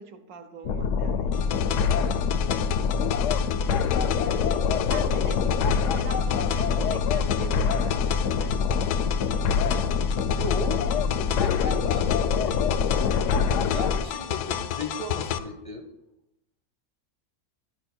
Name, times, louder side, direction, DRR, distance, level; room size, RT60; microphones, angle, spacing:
voice 1, 0.0-2.1 4.2-9.1, right 6 dB, 70° right, 6 dB, 1.3 m, -42 dB
sound 1, 0.7-14.0, left 6 dB, 70° left, 0.8 m, -25 dB
sound 2, 1.3-15.4, left 10 dB, 85° left, 1.1 m, -32 dB
voice 2, 10.2-12.7 13.2-15.9, left 2 dB, 35° left, 1 dB, 0.5 m, -37 dB
12.5 x 4.9 x 4.3 m, 0.88 s
omnidirectional pair, 1.6 m